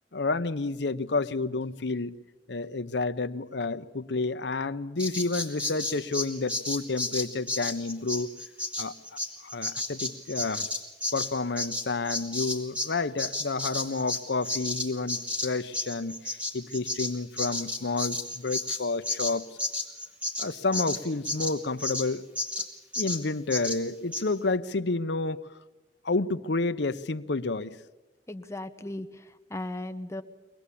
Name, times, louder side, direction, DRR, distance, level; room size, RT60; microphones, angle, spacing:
voice 1, 0.1-2.2 2.5-8.3 8.8-9.0 9.4-10.7 11.1-19.5 20.4-22.2 23.0-25.4 26.0-27.8, left 3 dB, 70° left, 11 dB, 0.9 m, -30 dB
Bird vocalization bird call bird song, 5.0-12.9 13.2-22.1 22.4-22.7 22.9-23.2 23.5-23.8 24.1-24.2, left 2 dB, 10° right, 2.7 m, -32 dB
voice 2, 28.3-30.2, left 1 dB, 15° left, 8 dB, 1.1 m, -37 dB
24.5 x 20.0 x 8.5 m, 1.1 s
head